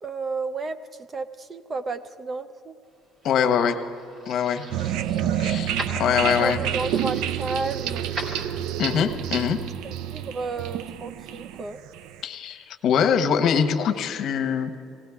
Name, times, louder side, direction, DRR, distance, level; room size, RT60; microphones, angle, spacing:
voice 1, 0.0-0.8 1.1-2.8 6.2-8.1 9.8-11.8, right 3 dB, 30° right, 11 dB, 0.6 m, -32 dB
lanyard at keychain, 3.0-8.9, right 1 dB, 45° right, 2.7 m, -40 dB
voice 2, 3.2-3.8 4.3-4.6 5.4-6.6 8.8-9.6 12.2-14.7, left 7 dB, 55° left, 7 dB, 1.0 m, -23 dB
sound 1, 4.7-12.2, right 10 dB, 80° right, 0.4 m, -29 dB
18.5 x 17.5 x 3.5 m, 2.6 s
cardioid pair, 120°, 0 cm